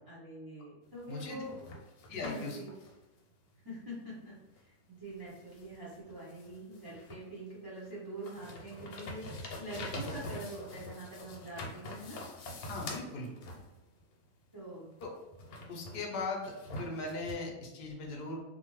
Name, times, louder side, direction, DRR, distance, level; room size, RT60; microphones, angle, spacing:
voice 1, 0.1-1.7 2.2-2.7 3.6-12.5 14.5-14.9, right 1 dB, 35° right, -6 dB, 0.3 m, -45 dB
sound 1, 0.9-3.0 4.6-4.7 5.3-7.4 7.8-14.0 15.0-17.3, left 1 dB, 80° left, 1.1 m, -45 dB
voice 2, 1.1-1.4 2.1-2.6 12.7-13.3 15.0-15.1 15.7-16.5 16.8-18.4, left 3 dB, 55° left, -1 dB, 0.7 m, -38 dB
2.6 x 2.4 x 3.0 m, 1.1 s
omnidirectional pair, 1.6 m